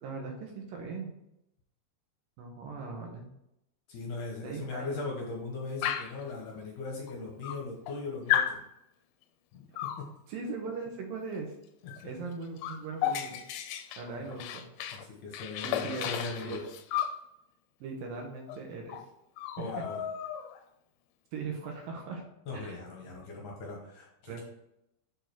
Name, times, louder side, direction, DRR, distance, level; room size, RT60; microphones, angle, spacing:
voice 1, 0.0-1.1 2.4-3.3 4.4-5.0 10.3-11.5 12.0-13.4 14.0-14.7 15.6-16.6 17.8-19.0 19.6-19.8 21.3-22.2 22.5-22.8 24.3-24.4, right 4 dB, 70° right, 2 dB, 2.5 m, -39 dB
voice 2, 3.9-8.6 9.5-10.1 11.8-12.1 14.2-14.3 14.9-16.6 19.6-20.0 22.5-24.4, left 3 dB, 65° left, -1 dB, 2.2 m, -39 dB
Dog, 5.8-6.2 7.1-7.2 7.4-8.0 8.3-8.6 9.8-10.1 11.9-12.1 12.3-15.0 15.3-17.2 18.5-18.6 18.9-19.1 19.4-20.6, left 10 dB, 80° left, 2.4 m, -33 dB
7.0 x 4.9 x 4.5 m, 0.83 s
omnidirectional pair, 4.6 m